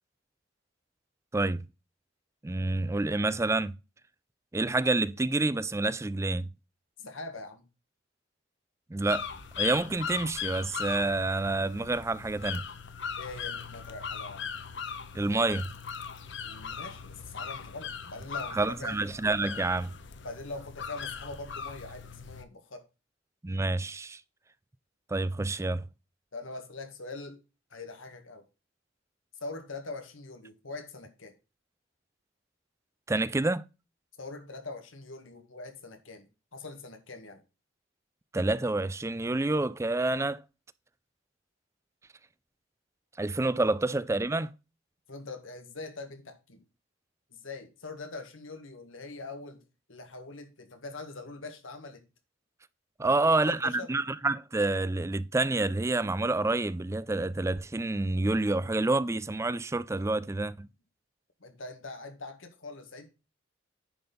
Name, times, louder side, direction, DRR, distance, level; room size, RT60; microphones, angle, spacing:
voice 1, 1.3-1.7 2.4-3.8 4.5-6.5 8.9-9.3 9.6-12.7 15.1-15.7 18.5-19.9 23.4-24.2 25.1-25.9 33.1-33.6 38.3-40.4 43.2-44.5 53.0-60.7, right 2 dB, 15° right, 0.4 m, -28 dB
voice 2, 7.0-7.6 13.1-14.5 16.4-19.0 20.2-22.8 26.3-27.4 27.7-28.4 29.4-31.4 34.2-37.4 45.1-46.6 47.3-49.6 49.9-52.0 53.0-53.9 61.4-63.1, left 3 dB, 90° left, 1.8 m, -43 dB
sound 1, 9.1-22.4, left 7 dB, 60° left, 0.9 m, -39 dB
10.0 x 4.3 x 5.2 m
head